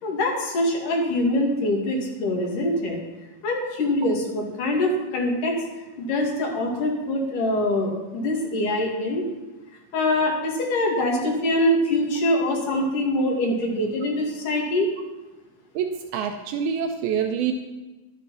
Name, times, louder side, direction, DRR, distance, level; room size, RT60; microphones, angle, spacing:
voice 1, 0.0-3.0 3.4-5.6 6.0-9.3 9.9-14.9, left 1 dB, 55° left, -1 dB, 3.8 m, -24 dB
voice 2, 15.8-17.5, right 7 dB, 80° right, 5 dB, 2.6 m, -26 dB
12.0 x 10.5 x 5.6 m, 1.1 s
omnidirectional pair, 4.5 m